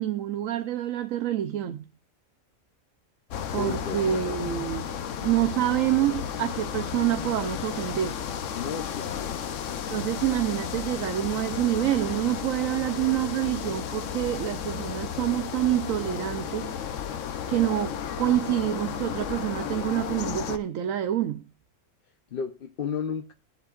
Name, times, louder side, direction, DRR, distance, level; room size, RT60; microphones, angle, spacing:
voice 1, 0.0-1.8 3.5-4.9 5.2-8.2 9.9-16.8 17.5-21.4, right 12 dB, 80° right, 1.1 m, -27 dB
sound 1, 3.3-20.6, left 8 dB, 70° left, 1.1 m, -33 dB
voice 2, 3.4-4.4 8.5-9.4 22.0-23.3, left 7 dB, 50° left, 0.9 m, -34 dB
22.0 x 8.1 x 2.4 m
omnidirectional pair, 1.4 m